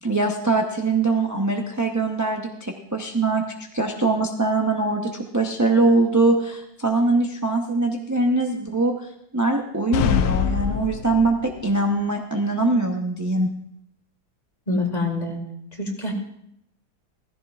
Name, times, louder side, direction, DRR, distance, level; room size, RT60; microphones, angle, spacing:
voice 1, 0.0-3.4 3.7-8.9 9.3-13.5, right 2 dB, 20° right, 1 dB, 0.5 m, -22 dB
sound 1, 9.9-11.6, left 9 dB, 80° left, 1.1 m, -23 dB
voice 2, 14.7-15.4 15.8-16.1, left 2 dB, 25° left, 2 dB, 1.9 m, -25 dB
16.0 x 15.0 x 2.4 m, 0.75 s
omnidirectional pair, 1.7 m